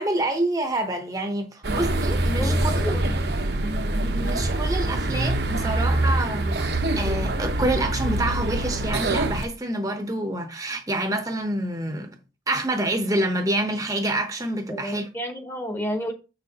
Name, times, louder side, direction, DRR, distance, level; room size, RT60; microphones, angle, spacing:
voice 1, 0.0-3.0 4.0-12.1 12.5-15.1, right 1 dB, 20° right, 0.8 m, -27 dB
sound 1, 1.6-9.4, right 1 dB, 70° right, 0.9 m, -24 dB
voice 2, 14.7-16.1, equal, 15° left, 1.1 m, -30 dB
7.5 x 6.4 x 2.9 m
head